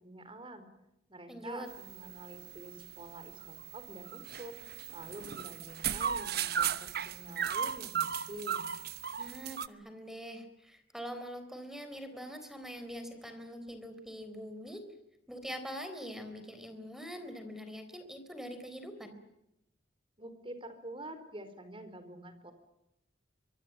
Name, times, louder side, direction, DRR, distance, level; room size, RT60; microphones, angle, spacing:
voice 1, 0.0-0.6 1.1-4.5 4.9-8.7 20.2-22.5, right 1 dB, 30° right, 10 dB, 4.6 m, -47 dB
voice 2, 1.3-1.7 9.2-14.9 15.3-19.2, equal, ahead, 8 dB, 3.9 m, -44 dB
sound 1, 1.7-9.7, right 8 dB, 60° right, 1.1 m, -37 dB
25.0 x 23.5 x 8.9 m, 0.85 s
head